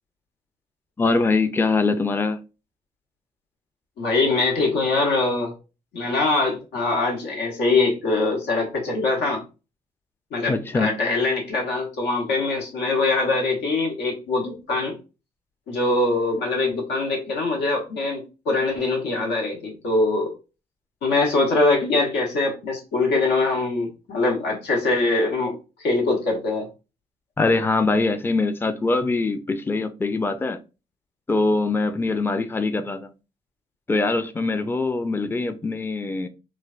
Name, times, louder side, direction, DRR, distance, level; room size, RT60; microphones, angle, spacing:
voice 1, 1.0-2.4 10.5-10.9 27.4-30.6 31.3-33.1 33.9-36.3, left 3 dB, 15° left, 0.4 m, -23 dB
voice 2, 4.0-5.5 5.9-9.4 10.3-14.9 15.7-20.3 21.0-26.7, left 3 dB, 85° left, 0.9 m, -23 dB
3.2 x 2.2 x 2.4 m
supercardioid pair, 60°, 17 cm